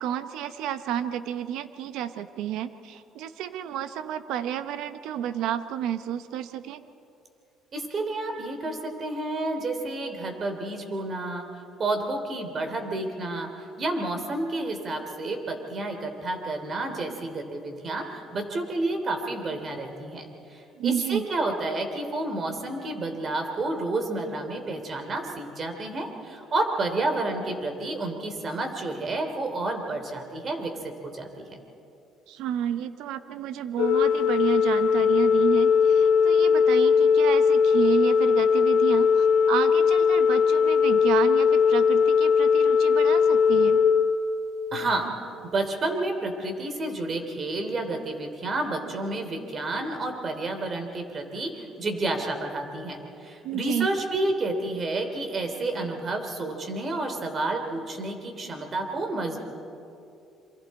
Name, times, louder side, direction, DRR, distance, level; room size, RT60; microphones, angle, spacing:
voice 1, 0.0-6.8 20.8-21.3 32.3-43.8 53.4-53.9, right 10 dB, 80° right, 11 dB, 0.9 m, -31 dB
voice 2, 7.7-11.5 11.8-13.5 13.8-31.5 44.7-45.1 45.5-59.4, right 2 dB, 40° right, 5 dB, 3.2 m, -30 dB
Organ, 33.8-44.9, left 6 dB, 90° left, 1.0 m, -20 dB
27.5 x 24.0 x 4.3 m, 2.7 s
cardioid pair, 100°, 0 cm